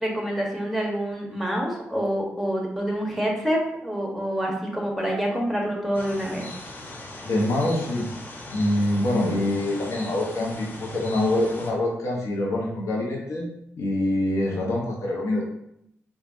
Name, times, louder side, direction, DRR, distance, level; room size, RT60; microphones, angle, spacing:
voice 1, 0.0-6.5, equal, ahead, -1 dB, 1.2 m, -27 dB
sound 1, 5.9-11.7, left 2 dB, 40° left, 0.8 m, -39 dB
voice 2, 7.2-8.1 8.5-13.5 13.8-15.5, left 1 dB, 70° left, -2 dB, 0.9 m, -25 dB
4.3 x 2.4 x 2.6 m, 0.75 s
supercardioid pair, 45°, 5 cm